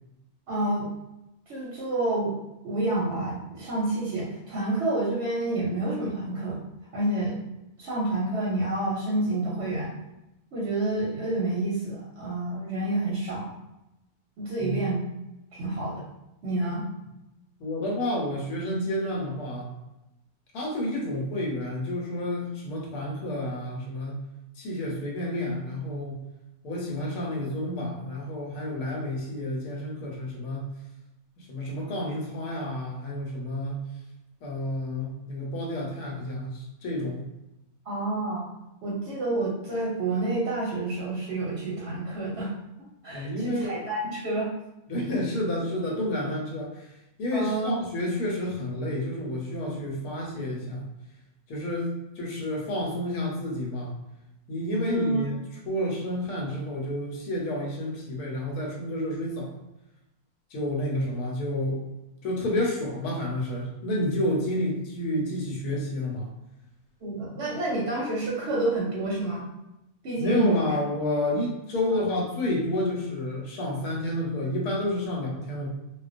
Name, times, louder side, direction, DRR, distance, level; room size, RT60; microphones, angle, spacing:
voice 1, 0.5-0.9 1.5-2.3 2.6-6.6 6.9-7.4 7.8-9.9 10.5-13.5 14.4-15.0 15.5-16.0 16.4-16.9 37.8-38.4 38.8-42.5 43.0-44.5 47.3-47.8 54.8-55.2 67.0-69.4 70.0-70.5, right 2 dB, 60° right, -6 dB, 0.7 m, -28 dB
voice 2, 17.6-19.7 20.5-24.2 24.6-26.2 26.6-30.7 31.4-33.8 34.4-37.2 43.1-43.8 44.9-46.9 47.2-50.9 51.5-51.9 52.2-53.9 54.5-55.4 55.7-59.5 60.5-61.8 62.2-66.3 70.2-75.7, left 1 dB, 85° left, -2 dB, 1.2 m, -30 dB
2.4 x 2.2 x 2.5 m, 0.93 s
omnidirectional pair, 1.6 m